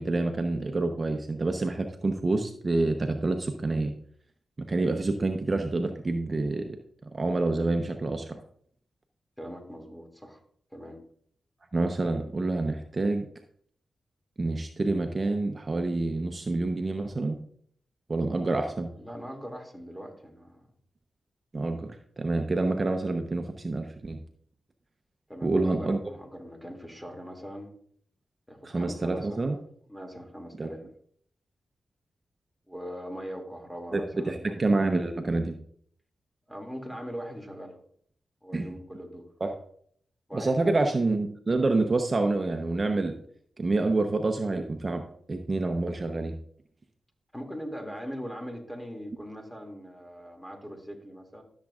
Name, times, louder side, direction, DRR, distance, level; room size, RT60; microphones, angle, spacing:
voice 1, 0.0-3.9 4.6-6.8 7.1-8.4 11.7-13.3 14.4-17.4 18.1-18.9 21.5-24.2 25.4-26.0 28.6-29.6 30.6-30.7 33.9-35.6 38.5-38.7 39.4-39.5 40.3-43.2 43.6-46.4, right 2 dB, 40° right, 5 dB, 0.9 m, -27 dB
voice 2, 9.4-10.4 10.7-11.0 18.5-18.6 19.0-20.6 25.3-27.7 28.5-29.5 29.9-30.9 32.7-34.6 36.5-37.8 38.4-39.2 40.3-40.7 47.3-51.4, equal, 5° left, 3 dB, 2.5 m, -41 dB
13.0 x 7.3 x 2.5 m, 0.62 s
supercardioid pair, 45°, 0 cm